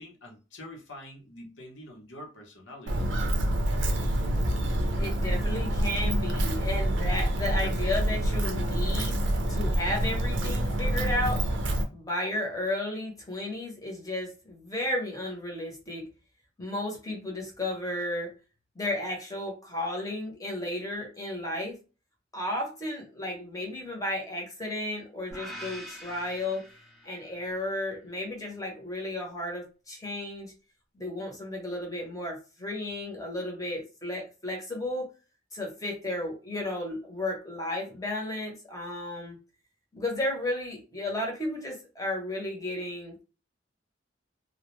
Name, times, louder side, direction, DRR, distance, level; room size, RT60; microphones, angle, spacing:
voice 1, 0.0-3.1, left 1 dB, 80° left, 0.8 m, -46 dB
Walk footsteps, 2.9-11.8, right 1 dB, 75° right, 0.5 m, -27 dB
voice 2, 5.0-9.2 9.5-11.4 11.9-16.1 16.6-18.3 18.7-21.8 22.3-26.6 27.0-30.5 30.9-35.1 35.5-39.4 39.9-43.2, left 1 dB, 20° left, 0.8 m, -33 dB
sound 1, 25.3-27.5, equal, ahead, 0.5 m, -44 dB
2.2 x 2.1 x 3.0 m
head